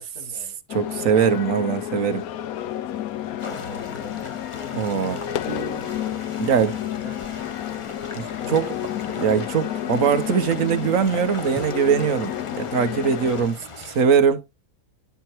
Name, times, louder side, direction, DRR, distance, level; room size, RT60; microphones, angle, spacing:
voice 1, 0.0-0.5 3.3-5.5 6.9-7.2 8.4-9.1, left 3 dB, 90° left, 4.9 m, -41 dB
sound 1, 0.7-13.5, left 11 dB, 75° left, 1.1 m, -31 dB
voice 2, 0.7-2.3 4.7-5.2 6.4-6.8 8.1-8.7 9.2-14.4, right 7 dB, 60° right, 1.3 m, -21 dB
sound 2, 3.4-14.0, left 3 dB, 25° left, 0.8 m, -40 dB
Piano, 5.5-6.5, right 10 dB, 80° right, 1.4 m, -39 dB
10.5 x 4.5 x 4.4 m
omnidirectional pair, 1.6 m